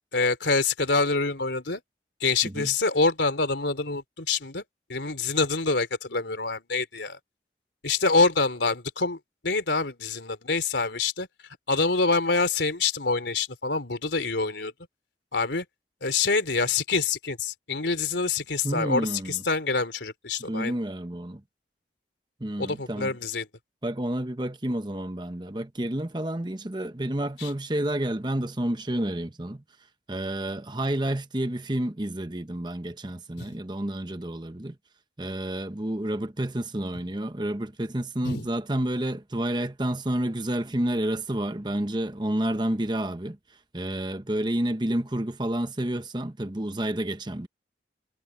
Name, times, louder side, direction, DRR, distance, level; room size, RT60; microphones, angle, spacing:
voice 1, 0.1-1.8 2.2-4.6 4.9-7.2 7.8-9.2 9.4-11.3 11.7-14.7 15.3-15.7 16.0-20.7 22.6-23.5 27.4-27.5 33.4-33.5 38.2-38.5, left 3 dB, 90° left, 3.6 m, -26 dB
voice 2, 2.4-2.7 18.6-19.4 20.4-21.4 22.4-23.1 23.8-29.6 30.1-34.8 35.2-43.4 43.7-47.5, right 1 dB, 25° right, 1.0 m, -30 dB
head